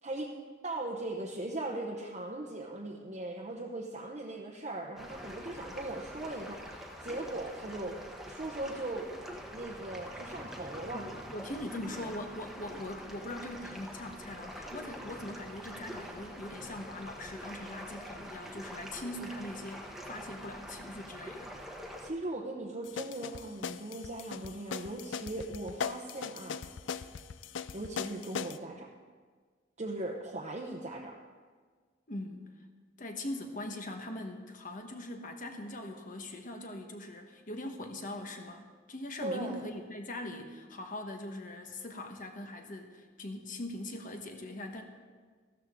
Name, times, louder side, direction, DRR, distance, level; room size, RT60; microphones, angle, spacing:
voice 1, 0.6-8.0 8.3-9.1 9.5-11.0 22.0-26.6 27.7-28.9 29.8-31.2 39.2-39.7, right 2 dB, 40° right, -2 dB, 0.9 m, -39 dB
sound 1, 5.0-22.1, equal, ahead, 1.1 m, -45 dB
voice 2, 10.9-21.5 32.1-32.5 33.0-44.8, left 1 dB, 45° left, 4 dB, 1.2 m, -41 dB
sound 2, 22.8-28.6, left 6 dB, 80° left, 0.4 m, -39 dB
14.0 x 13.0 x 3.7 m, 1.5 s
head